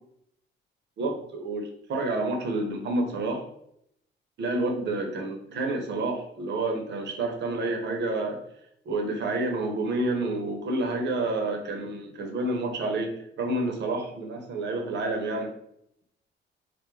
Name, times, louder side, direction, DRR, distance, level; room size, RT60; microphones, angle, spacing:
voice 1, 1.0-3.4 4.4-8.4 8.9-15.5, right 2 dB, 65° right, 3 dB, 0.6 m, -29 dB
2.2 x 2.1 x 3.1 m, 0.74 s
cardioid pair, 90°, 20 cm